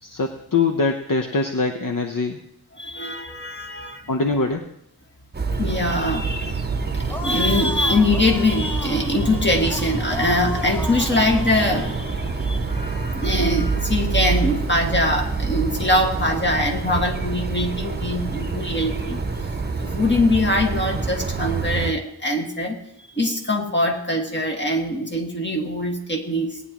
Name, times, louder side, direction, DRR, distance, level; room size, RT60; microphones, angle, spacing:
voice 1, 0.0-2.4 4.1-4.7, left 3 dB, 55° left, 4 dB, 0.9 m, -23 dB
voice 2, 2.8-4.1 5.6-6.6 6.9-19.2 19.8-22.8 23.1-26.6, left 1 dB, 25° left, 1 dB, 2.0 m, -23 dB
sound 1, 5.3-21.9, right 4 dB, 25° right, 0.9 m, -26 dB
sound 2, 7.1-12.0, left 2 dB, 5° left, 0.9 m, -35 dB
19.0 x 9.8 x 3.0 m, 0.78 s
wide cardioid pair, 80°, 40 cm